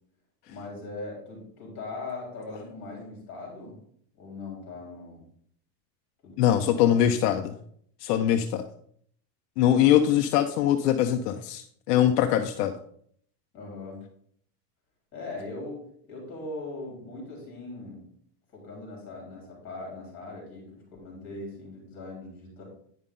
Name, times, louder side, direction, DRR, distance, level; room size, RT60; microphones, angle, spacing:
voice 1, 0.5-3.8 4.1-5.2 6.2-7.2 13.5-14.0 15.1-15.8 16.0-18.0 18.5-22.6, left 2 dB, 25° left, -2 dB, 3.7 m, -40 dB
voice 2, 6.4-7.6 8.0-8.6 9.6-12.7, left 10 dB, 70° left, 6 dB, 0.7 m, -22 dB
9.6 x 5.4 x 3.7 m, 0.64 s
supercardioid pair, 175°, 49 cm